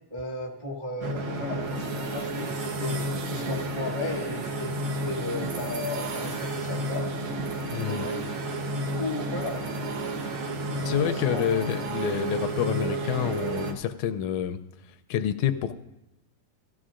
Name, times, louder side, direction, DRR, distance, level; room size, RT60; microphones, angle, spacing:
voice 1, 0.1-2.5 2.8-7.1 7.8-8.2 8.7-10.2 10.6-11.6, left 2 dB, 15° right, -3 dB, 1.0 m, -35 dB
sound 1, 1.0-13.7, right 2 dB, 60° right, 1.4 m, -31 dB
voice 2, 7.7-8.1 10.8-14.6 15.1-15.7, left 10 dB, 80° left, 9 dB, 1.9 m, -28 dB
17.0 x 14.0 x 2.5 m, 0.94 s
omnidirectional pair, 3.4 m